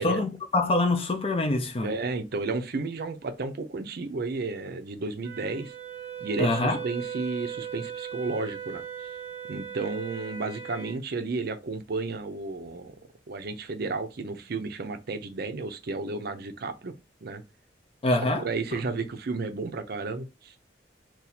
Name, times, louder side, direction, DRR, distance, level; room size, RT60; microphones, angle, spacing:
voice 1, 0.0-1.9 6.4-6.8 18.0-18.5, left 2 dB, 35° left, 0.5 m, -25 dB
voice 2, 1.8-5.7 6.2-8.8 9.5-12.9 13.3-16.9 17.2-17.4 18.1-20.6, right 3 dB, 60° right, 0.5 m, -32 dB
Wind instrument woodwind instrument, 5.2-11.0, right 8 dB, 10° right, 0.7 m, -38 dB
2.7 x 2.3 x 4.1 m
head